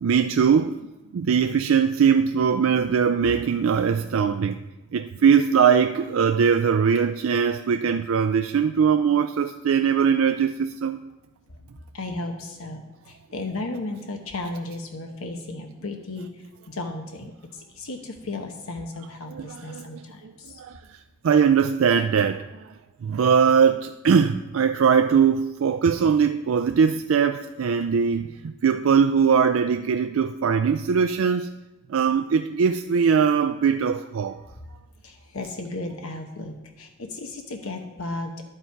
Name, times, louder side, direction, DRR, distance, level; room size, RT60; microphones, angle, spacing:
voice 1, 0.0-4.6 4.9-11.0 19.3-21.0 21.2-22.7 23.0-31.5 31.9-34.4, right 6 dB, 70° right, 0.4 m, -21 dB
voice 2, 11.9-20.6 35.0-38.3, left 2 dB, 75° left, 1.0 m, -35 dB
11.5 x 7.7 x 4.6 m
head